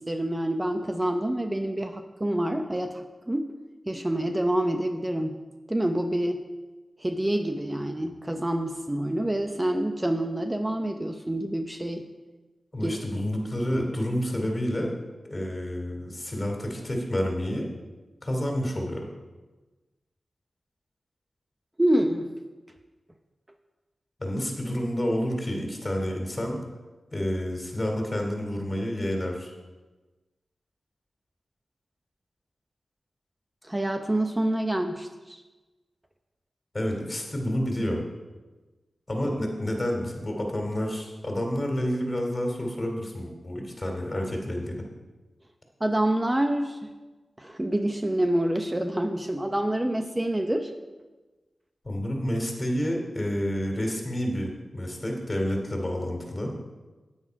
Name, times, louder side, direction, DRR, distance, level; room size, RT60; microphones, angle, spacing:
voice 1, 0.0-3.5 3.9-5.3 5.7-6.4 7.0-12.0 12.8-12.9 21.8-22.3 33.6-35.4 45.8-46.8 47.4-50.7, right 1 dB, 20° right, 5 dB, 0.8 m, -27 dB
voice 2, 12.7-14.9 15.2-17.7 18.2-19.0 24.2-26.6 27.1-29.5 36.7-38.0 39.1-44.8 51.8-56.5, equal, 35° left, 1 dB, 2.8 m, -29 dB
9.6 x 9.1 x 4.7 m, 1.2 s
cardioid pair, 45°, 0 cm